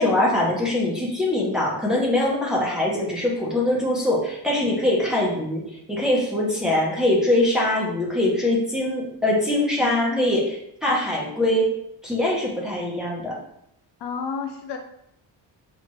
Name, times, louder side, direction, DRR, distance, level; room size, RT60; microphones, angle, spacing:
voice 1, 0.0-5.6 5.9-11.7 12.0-13.4, left 1 dB, ahead, -5 dB, 0.8 m, -22 dB
voice 2, 9.8-10.5 14.0-14.8, left 5 dB, 65° left, 4 dB, 0.5 m, -32 dB
5.8 x 2.4 x 3.1 m, 0.75 s
wide cardioid pair, 170°, 46 cm